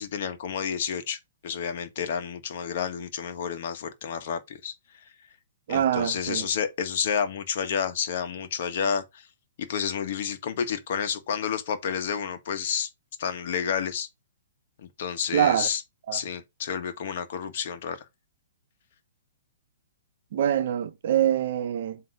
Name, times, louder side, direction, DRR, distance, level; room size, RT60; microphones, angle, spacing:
voice 1, 0.0-4.7 5.7-9.3 9.6-12.9 13.2-14.1 14.8-15.8 16.1-18.0, left 7 dB, 60° left, 1.3 m, -30 dB
voice 2, 5.7-6.5 15.3-15.7 16.1-16.2 20.3-22.0, right 10 dB, 60° right, 0.8 m, -24 dB
7.7 x 3.0 x 4.8 m
hypercardioid pair, 130°, 0 cm